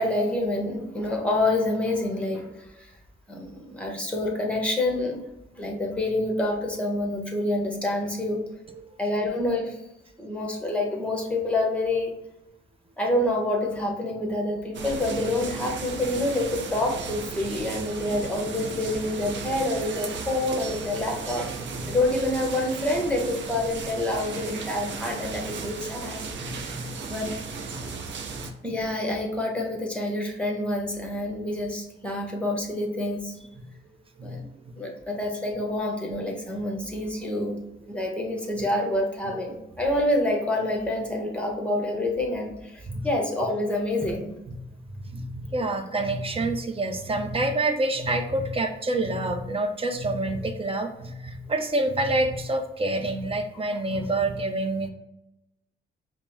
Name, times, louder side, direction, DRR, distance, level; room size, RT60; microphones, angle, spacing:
voice 1, 0.0-2.9 3.3-5.2 5.6-8.4 9.0-9.8 10.2-12.1 13.0-21.5 21.9-27.3 28.6-33.4 34.2-34.5 34.8-37.6 37.9-44.3, left 1 dB, 5° left, 1 dB, 1.0 m, -27 dB
sound 1, 14.7-28.5, right 5 dB, 65° right, 0.6 m, -35 dB
voice 2, 26.4-26.9 27.7-27.8 28.3-28.5 34.2-34.4 34.7-34.8 42.9-43.1 45.0-54.9, right 2 dB, 30° right, 5 dB, 0.6 m, -27 dB
5.1 x 2.1 x 2.7 m, 0.91 s
cardioid pair, 80°, 20 cm